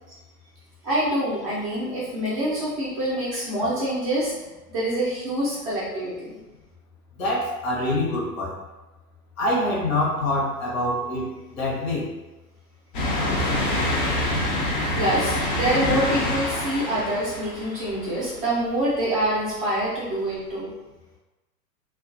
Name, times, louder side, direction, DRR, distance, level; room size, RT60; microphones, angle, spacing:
voice 1, 0.8-4.3 4.7-6.3 15.0-20.7, right 1 dB, 25° right, -9 dB, 0.5 m, -26 dB
voice 2, 7.2-8.6 9.4-12.1, left 1 dB, 55° left, -2 dB, 0.9 m, -25 dB
sound 1, 12.9-18.5 19.0-19.1 20.4-20.5, left 1 dB, 35° left, 0.4 m, -26 dB
2.4 x 2.3 x 2.5 m, 1.1 s
figure-of-eight pair, 105°, 49 cm